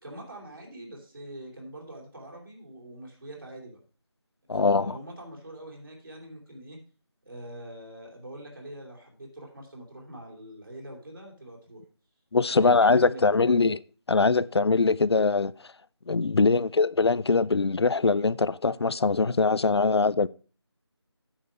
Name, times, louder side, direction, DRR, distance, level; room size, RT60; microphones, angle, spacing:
voice 1, 0.0-3.8 4.5-6.8 7.2-11.8 12.5-13.7 16.4-16.7, right 1 dB, 50° right, 3.0 m, -43 dB
voice 2, 4.5-5.0 12.3-13.8 14.1-15.5 16.1-20.3, left 4 dB, 70° left, 0.5 m, -22 dB
8.9 x 6.7 x 4.8 m
figure-of-eight pair, 170°, 14 cm